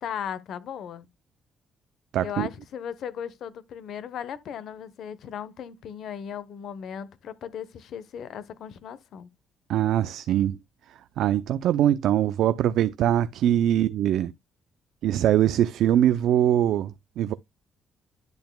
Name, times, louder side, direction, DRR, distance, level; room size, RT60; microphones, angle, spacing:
voice 1, 0.0-1.1 2.2-9.3, left 8 dB, 70° left, 0.9 m, -37 dB
voice 2, 2.1-2.5 9.7-10.6 11.2-14.3 15.0-17.3, right 11 dB, 80° right, 0.4 m, -22 dB
10.5 x 6.9 x 2.2 m
cardioid pair, 90°, 0 cm